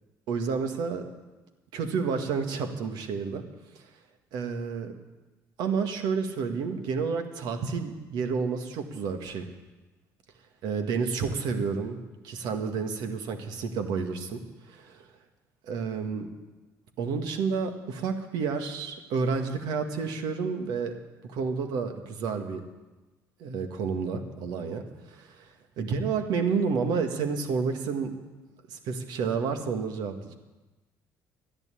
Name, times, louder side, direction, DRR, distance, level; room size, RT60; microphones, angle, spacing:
voice 1, 0.3-1.1 1.7-3.4 3.7-3.8 4.3-4.9 5.6-9.5 10.6-12.0 12.2-14.4 14.7-15.0 15.7-16.3 17.0-20.9 21.2-22.6 23.4-25.5 25.8-28.2 28.7-30.3, right 5 dB, 70° right, 5 dB, 1.8 m, -30 dB
13.0 x 10.5 x 8.5 m, 1.2 s
supercardioid pair, 70°, 7 cm